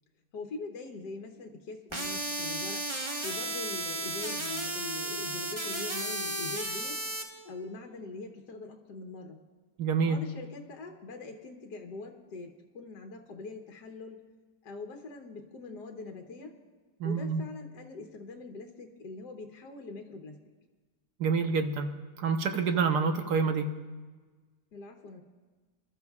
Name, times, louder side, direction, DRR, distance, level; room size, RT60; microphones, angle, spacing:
voice 1, 0.3-2.9 3.2-7.0 7.4-9.4 10.0-14.2 14.6-16.6 17.0-20.4 24.7-25.2, left 3 dB, 75° left, 3 dB, 1.6 m, -43 dB
sound 1, 1.9-7.2, right 2 dB, 20° right, 1.0 m, -34 dB
voice 2, 9.8-10.2 17.0-17.4 21.2-21.9 22.2-23.7, right 5 dB, 75° right, 6 dB, 1.5 m, -27 dB
27.0 x 13.0 x 2.4 m, 1.4 s
omnidirectional pair, 1.8 m